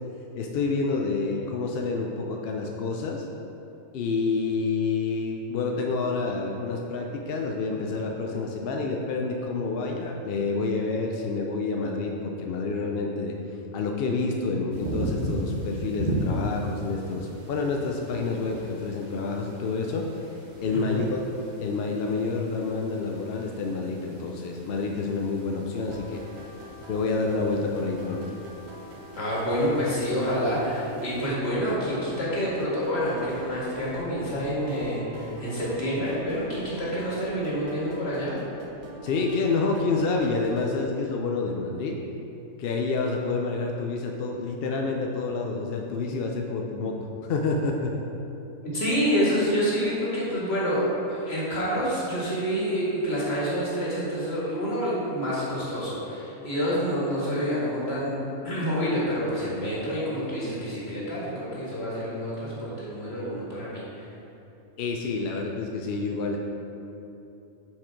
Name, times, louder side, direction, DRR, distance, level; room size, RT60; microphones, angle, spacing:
voice 1, 0.3-3.3 3.9-13.3 13.7-20.1 20.6-21.2 21.6-26.2 26.9-28.3 39.0-42.0 42.6-47.0 47.2-47.9 64.8-66.4, left 4 dB, 60° left, 1 dB, 0.6 m, -28 dB
sound 1, 14.7-31.3, right 1 dB, 40° right, 0.8 m, -38 dB
voice 2, 20.7-21.0 29.1-38.3 48.7-58.2 58.4-64.1, equal, 45° left, -7 dB, 2.0 m, -28 dB
sound 2, 25.9-40.7, equal, 80° right, 1.3 m, -45 dB
7.2 x 4.8 x 4.5 m, 2.9 s
omnidirectional pair, 1.5 m